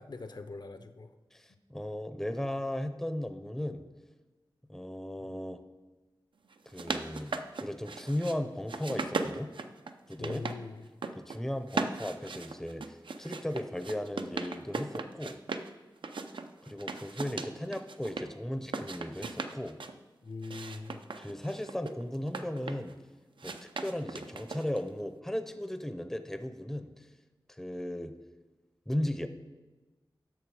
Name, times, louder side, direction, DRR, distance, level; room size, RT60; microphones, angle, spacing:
voice 1, 0.0-1.2 5.2-5.3 10.2-10.9 20.2-21.0, left 3 dB, 60° left, 9 dB, 0.6 m, -42 dB
voice 2, 1.3-3.9 4.7-5.6 6.7-7.3 7.6-9.5 10.1-10.4 11.2-15.4 16.7-19.8 21.2-22.9 23.4-27.1 27.6-28.1 28.9-29.3, left 1 dB, 5° left, 9 dB, 0.5 m, -36 dB
sound 1, 6.5-8.4 8.7-10.6 10.9-11.4 11.7-15.7 16.0-18.3 18.6-19.9 20.4-22.9 23.4-24.9, right 4 dB, 80° right, 0.5 m, -38 dB
10.5 x 6.5 x 4.8 m, 1.2 s
wide cardioid pair, 90°, 8 cm